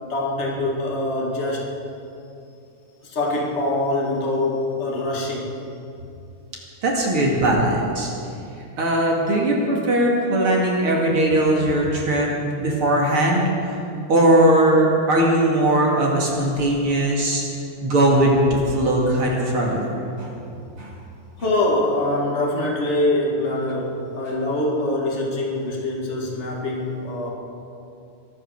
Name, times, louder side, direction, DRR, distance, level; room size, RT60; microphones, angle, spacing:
voice 1, 0.0-1.7 3.0-5.5 21.4-27.3, left 1 dB, 55° left, -2 dB, 0.7 m, -24 dB
voice 2, 6.8-8.1 8.8-12.3 12.6-13.7 14.1-17.4 17.8-20.3 20.8-20.9, right 1 dB, 40° right, -2 dB, 2.4 m, -19 dB
23.0 x 9.0 x 6.7 m, 2.6 s
omnidirectional pair, 4.7 m